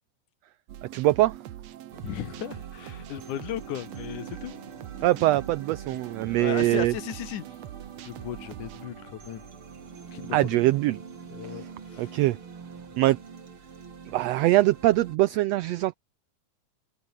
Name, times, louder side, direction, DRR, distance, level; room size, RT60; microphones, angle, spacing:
sound 1, 0.7-8.9, right 12 dB, 65° right, 2.1 m, -43 dB
voice 1, 0.9-1.3 5.0-6.9 10.3-11.0 12.0-12.4 13.0-13.2 14.1-15.9, right 17 dB, 85° right, 1.4 m, -22 dB
sound 2, 1.9-15.2, right 5 dB, 45° right, 3.4 m, -45 dB
voice 2, 2.0-4.5 5.0-5.1 6.2-7.6 8.0-9.4 10.1-10.6 11.3-12.2, left 11 dB, 80° left, 2.9 m, -36 dB
open air
omnidirectional pair, 3.5 m